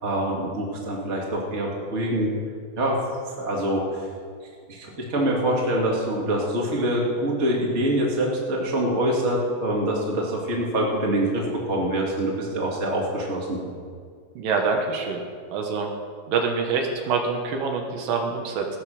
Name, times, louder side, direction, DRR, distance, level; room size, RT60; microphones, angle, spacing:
voice 1, 0.0-2.3 2.8-3.0 3.4-4.0 4.7-13.6, right 1 dB, 25° right, -2 dB, 2.1 m, -25 dB
voice 2, 14.4-15.2 15.5-15.9 16.3-18.7, right 5 dB, 75° right, 2 dB, 2.9 m, -25 dB
17.5 x 8.2 x 6.5 m, 2.1 s
omnidirectional pair, 4.1 m